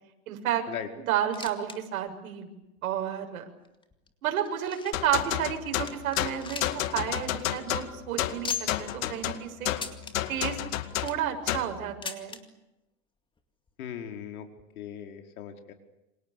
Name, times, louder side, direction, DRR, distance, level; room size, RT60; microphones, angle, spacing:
voice 1, 0.3-0.7 1.0-2.5 2.8-3.4 4.2-9.7 10.3-10.6 11.0-12.4, right 10 dB, 75° right, 4 dB, 7.0 m, -31 dB
sound 1, 1.1-1.8 2.1-2.2 2.8-2.9 3.6-5.1 5.5-5.6 5.9-6.9 7.2-7.3 7.6-7.7 8.4-8.9 9.7-10.1 10.8-11.3 12.0-12.4 13.4-13.5 13.7-13.8 14.6-14.7, left 6 dB, 10° left, 2.2 m, -38 dB
sound 2, 4.9-11.8, left 13 dB, 65° left, 2.3 m, -31 dB
voice 2, 13.8-14.5 14.8-15.7, left 9 dB, 90° left, 5 dB, 5.0 m, -38 dB
28.5 x 26.5 x 7.0 m, 0.94 s
supercardioid pair, 150°, 42 cm